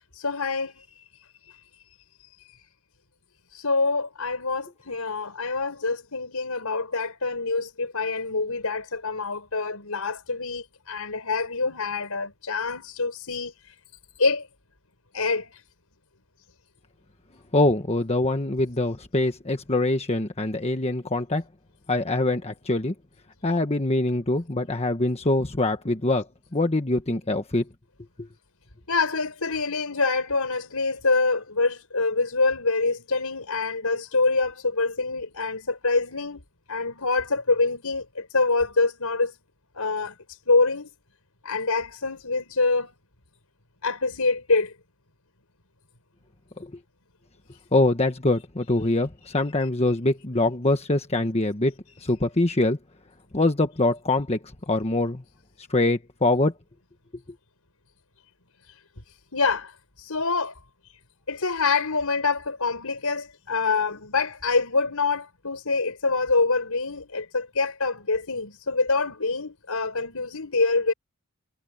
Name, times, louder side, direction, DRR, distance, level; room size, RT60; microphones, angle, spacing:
voice 1, 0.1-0.9 3.5-13.5 14.2-14.4 15.1-15.5 28.9-36.4 36.7-39.3 39.8-40.1 40.5-40.9 41.4-42.9 43.8-44.7 59.3-59.7 60.0-60.5 61.3-70.9, left 3 dB, 90° left, 4.7 m, -25 dB
voice 2, 17.5-21.4 21.9-22.9 23.4-26.3 26.5-27.6 46.6-46.7 47.7-51.7 52.0-52.8 53.3-54.4 54.7-55.2 55.7-56.5, left 2 dB, 30° left, 1.3 m, -24 dB
head